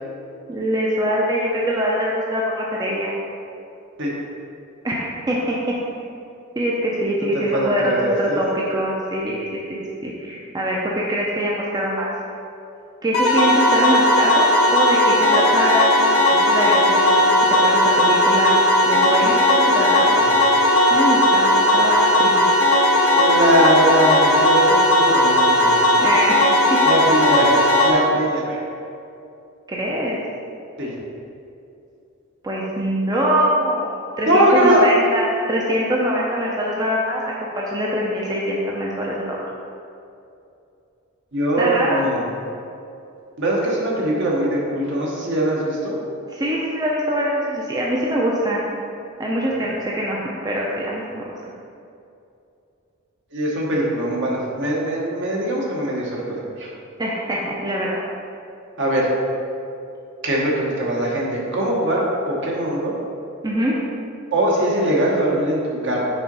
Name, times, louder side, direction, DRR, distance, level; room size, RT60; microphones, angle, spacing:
voice 1, 0.5-3.1 4.8-5.8 6.6-12.1 13.0-17.3 17.6-18.6 18.9-20.2 20.9-22.3 26.0-26.4 26.7-26.8 29.7-30.2 32.4-39.4 41.6-42.3 46.3-48.6 49.2-51.3 57.0-58.0 63.4-63.7, equal, 20° right, -4 dB, 0.6 m, -23 dB
voice 2, 7.2-8.5 20.2-20.3 23.1-25.7 26.8-27.5 27.8-28.6 30.8-30.9 34.3-34.8 41.3-42.2 43.4-46.0 53.3-56.7 58.8-59.1 60.2-62.9 64.3-66.1, right 1 dB, 60° right, -4 dB, 1.4 m, -21 dB
sound 1, 13.1-27.9, left 1 dB, 75° left, 0.9 m, -16 dB
6.0 x 3.9 x 5.4 m, 2.6 s
head